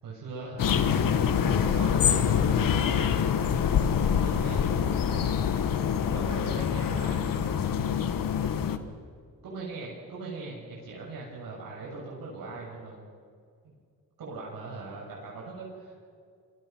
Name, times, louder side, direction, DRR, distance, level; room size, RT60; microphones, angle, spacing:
voice 1, 0.0-3.1 4.1-4.6 5.1-5.5 6.1-8.1 8.4-8.8 9.4-13.0 13.6-13.7 14.2-15.9, right 3 dB, 75° right, -4 dB, 7.6 m, -40 dB
sound 1, 0.6-8.8, left 8 dB, 70° left, 1.6 m, -25 dB
27.0 x 24.5 x 6.2 m, 2.1 s
cardioid pair, 100°, 35 cm